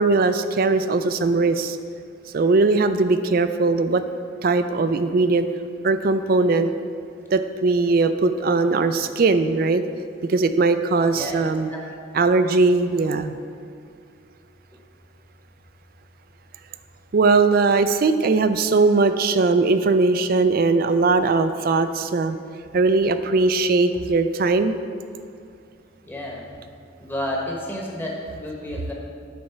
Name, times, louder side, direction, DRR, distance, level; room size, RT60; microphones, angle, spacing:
voice 1, 0.0-1.8 2.3-4.0 4.4-5.5 5.8-6.7 7.3-9.8 10.3-11.7 12.1-13.4 17.1-22.4 22.7-24.8, right 3 dB, 45° right, 10 dB, 0.4 m, -19 dB
voice 2, 26.0-26.5 27.0-28.9, left 1 dB, 10° left, -2 dB, 1.1 m, -31 dB
9.5 x 4.2 x 5.9 m, 2.3 s
head